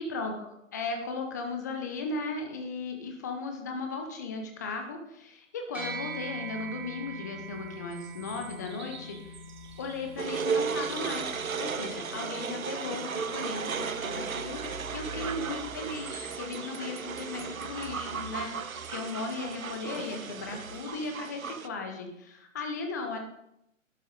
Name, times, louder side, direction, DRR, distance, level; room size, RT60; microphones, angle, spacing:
voice 1, 0.0-9.4 9.8-23.2, left 3 dB, 15° left, 4 dB, 0.6 m, -36 dB
sound 1, 5.7-15.4, right 1 dB, 5° right, 2.1 m, -44 dB
sound 2, 7.4-12.8 13.2-20.8, right 4 dB, 35° right, 1.1 m, -49 dB
sound 3, 10.2-21.7, right 6 dB, 85° right, 0.6 m, -35 dB
11.5 x 6.2 x 3.9 m, 0.81 s
figure-of-eight pair, 130°, 40 cm